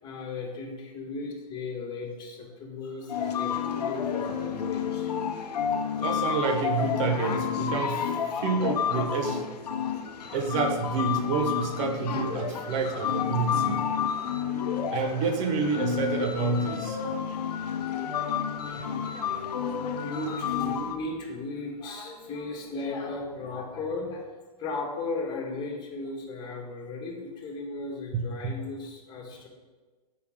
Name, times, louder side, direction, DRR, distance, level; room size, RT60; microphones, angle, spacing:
voice 1, 0.0-5.1 15.2-15.4 15.7-15.8 17.5-24.3 24.6-29.5, left 3 dB, 20° left, -1 dB, 1.4 m, -37 dB
sound 1, 3.1-21.0, left 8 dB, 85° left, 0.7 m, -30 dB
voice 2, 6.0-9.5 10.3-13.8 14.9-17.0 28.1-28.5, right 4 dB, 50° right, 5 dB, 1.0 m, -28 dB
6.7 x 4.9 x 3.7 m, 1.3 s
hypercardioid pair, 125°, 20 cm